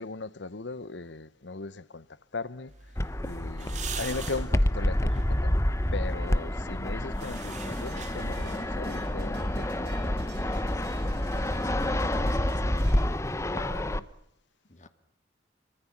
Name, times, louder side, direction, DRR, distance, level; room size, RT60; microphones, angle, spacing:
voice 1, 0.0-2.9 3.2-5.6 5.9-10.1 13.5-14.1, left 3 dB, 75° left, 1.0 m, -38 dB
sound 1, 2.7-8.9, right 6 dB, 40° right, 3.4 m, -44 dB
Fixed-wing aircraft airplane, 3.0-14.0, left 1 dB, 15° left, 0.9 m, -28 dB
sound 2, 7.2-13.1, right 4 dB, 60° right, 4.3 m, -51 dB
voice 2, 10.5-12.9 14.7-14.9, left 1 dB, 40° left, 2.3 m, -48 dB
26.0 x 24.0 x 7.4 m
head